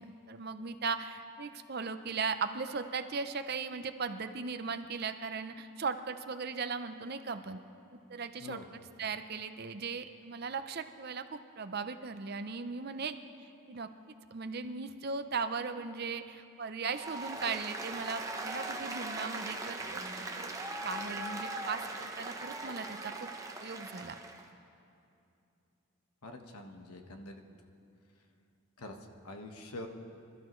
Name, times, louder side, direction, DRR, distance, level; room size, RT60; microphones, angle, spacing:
voice 1, 0.0-7.6 8.1-8.6 9.0-13.9 14.3-20.5 20.8-23.3 23.6-24.2, right 5 dB, 45° right, 9 dB, 0.6 m, -38 dB
voice 2, 8.4-8.7 26.2-27.4 28.8-29.0 29.2-29.9, left 2 dB, 90° left, 4 dB, 1.3 m, -45 dB
Applause, 16.9-24.4, right 2 dB, 15° right, 0.8 m, -40 dB
25.5 x 13.0 x 3.1 m, 2.6 s
head